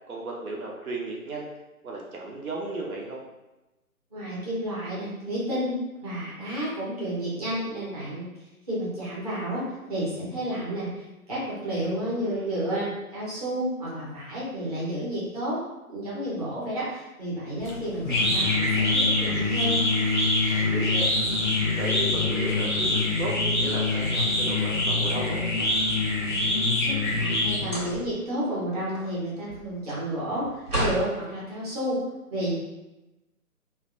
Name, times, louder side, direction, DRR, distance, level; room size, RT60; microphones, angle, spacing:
voice 1, 0.1-1.5 1.8-3.2 12.2-12.5 20.5-21.1 21.7-25.4, right 2 dB, 70° right, -2 dB, 0.7 m, -34 dB
voice 2, 4.1-8.3 8.7-9.6 9.9-15.6 15.9-19.8 26.8-32.0 32.3-32.5, right 1 dB, 25° right, -8 dB, 0.7 m, -31 dB
sound 1, 17.6-28.0, left 2 dB, 35° left, 0.5 m, -24 dB
sound 2, 25.3-26.4 27.6-28.2 28.6-31.1, right 1 dB, 90° right, 1.1 m, -33 dB
2.5 x 2.1 x 2.5 m, 1.0 s
figure-of-eight pair, 140°, 44 cm